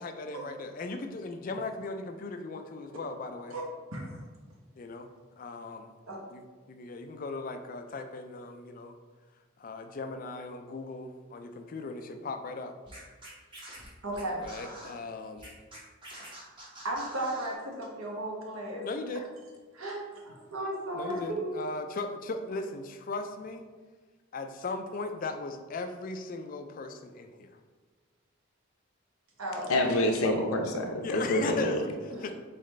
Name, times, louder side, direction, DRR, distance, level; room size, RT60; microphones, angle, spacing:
voice 1, 0.0-3.6 4.8-5.1 5.4-5.9 6.3-9.0 9.6-12.7 14.4-15.5 18.8-19.3 20.9-23.7 24.3-27.5 31.0-32.3, left 3 dB, 40° left, 7 dB, 0.3 m, -38 dB
Scratching (performance technique), 12.9-14.9 15.4-17.6, right 1 dB, 25° right, 0.9 m, -46 dB
voice 2, 14.0-14.5 16.8-18.9 19.7-21.5 29.4-29.7 32.1-32.3, right 1 dB, 75° right, -1 dB, 1.1 m, -35 dB
voice 3, 29.7-31.8, left 1 dB, 85° left, 2 dB, 0.7 m, -27 dB
4.1 x 4.0 x 3.2 m, 1.4 s
head